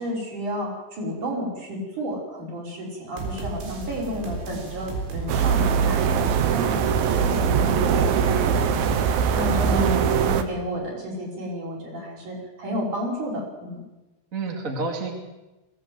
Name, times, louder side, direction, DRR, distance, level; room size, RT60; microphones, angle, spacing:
voice 1, 0.0-6.2 6.5-13.8, equal, 45° right, -2 dB, 6.9 m, -32 dB
sound 1, 3.2-9.9, right 3 dB, 85° right, 6.4 m, -34 dB
sound 2, 5.3-10.4, right 7 dB, 70° right, 2.6 m, -21 dB
voice 2, 9.7-10.3 14.3-15.1, right 4 dB, 25° right, 2 dB, 1.9 m, -29 dB
21.5 x 17.0 x 8.0 m, 1.0 s
omnidirectional pair, 5.2 m